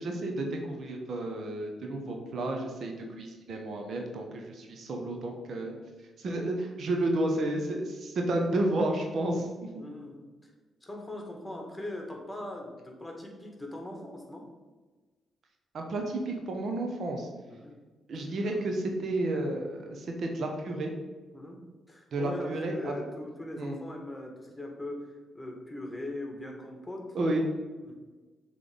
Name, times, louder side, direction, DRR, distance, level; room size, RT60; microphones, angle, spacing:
voice 1, 0.0-5.7 6.2-9.8 15.7-17.3 18.1-20.9 22.1-23.0 23.6-23.8 27.1-27.4, right 1 dB, 60° right, 2 dB, 1.1 m, -31 dB
voice 2, 9.8-10.3 10.8-14.5 17.5-17.8 18.1-18.2 18.5-18.6 21.3-27.2 27.8-27.9, left 1 dB, 15° left, 1 dB, 1.9 m, -41 dB
6.9 x 3.5 x 5.3 m, 1.3 s
hypercardioid pair, 45°, 0 cm